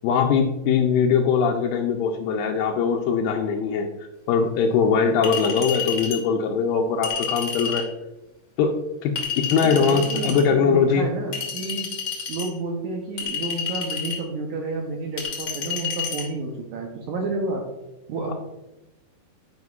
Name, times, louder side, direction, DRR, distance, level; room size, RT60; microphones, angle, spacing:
voice 1, 0.0-3.9 4.3-7.9 8.6-11.1, left 6 dB, 85° left, 2 dB, 2.3 m, -21 dB
Chink clink, 5.2-6.2 7.0-7.9 9.2-10.4 11.3-12.5 13.2-14.2 15.2-16.2, left 6 dB, 65° left, 1.0 m, -29 dB
voice 2, 9.5-11.9 12.3-17.6 18.1-18.3, right 3 dB, 75° right, 1 dB, 1.8 m, -30 dB
9.3 x 4.9 x 2.3 m, 0.97 s
omnidirectional pair, 4.0 m